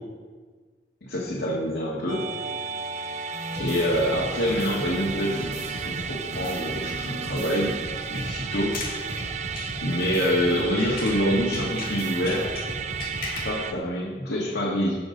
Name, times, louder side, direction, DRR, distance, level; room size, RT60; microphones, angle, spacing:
voice 1, 1.1-2.2 3.6-7.7 8.1-8.8 9.8-12.5 13.4-14.9, equal, 80° left, -6 dB, 1.9 m, -26 dB
Musical instrument, 2.1-13.7, right 7 dB, 40° right, 0.5 m, -34 dB
sound 1, 3.3-13.5, right 1 dB, 75° right, 2.2 m, -36 dB
sound 2, 8.7-11.3 11.5-13.6, left 4 dB, 55° left, 1.9 m, -38 dB
17.0 x 6.2 x 4.0 m, 1.5 s
head